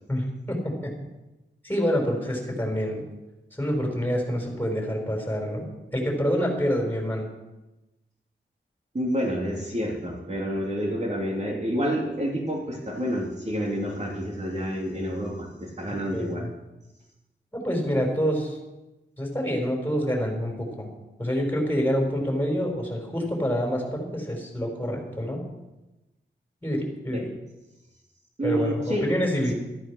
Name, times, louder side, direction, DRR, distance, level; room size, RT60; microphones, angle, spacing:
voice 1, 0.1-0.9 1.6-3.0 3.6-5.7 5.9-7.3 16.1-16.5 17.5-18.6 19.2-20.9 21.2-25.4 26.6-27.3 28.4-29.5, equal, 10° left, 0 dB, 5.3 m, -27 dB
voice 2, 8.9-16.5 27.1-27.3 28.4-29.1, equal, 35° right, -2 dB, 2.9 m, -28 dB
13.5 x 13.0 x 6.4 m, 1.0 s
wide cardioid pair, 90°, 19 cm